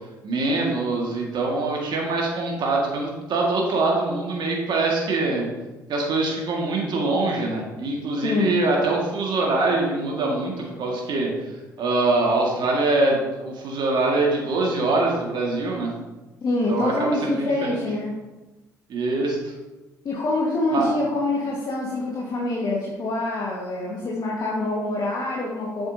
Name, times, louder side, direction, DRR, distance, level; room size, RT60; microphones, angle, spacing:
voice 1, 0.2-5.5 5.9-11.3 11.8-15.9 16.7-17.7 18.9-19.5 20.7-20.9, right 2 dB, 55° right, -1 dB, 1.8 m, -23 dB
voice 2, 8.2-8.6 16.4-18.1 20.0-25.9, left 2 dB, 45° left, -3 dB, 1.6 m, -25 dB
7.7 x 7.3 x 2.8 m, 1.1 s
hypercardioid pair, 55°, 9 cm